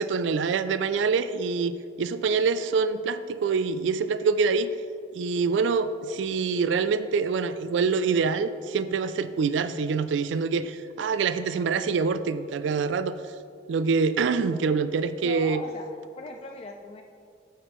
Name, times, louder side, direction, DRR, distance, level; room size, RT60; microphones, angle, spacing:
voice 1, 0.0-4.7 5.1-13.2 13.7-15.6, right 5 dB, 80° right, 12 dB, 0.3 m, -25 dB
voice 2, 15.2-15.9 16.2-17.0, left 3 dB, 30° left, 3 dB, 0.3 m, -39 dB
9.2 x 7.9 x 3.1 m, 2.3 s
head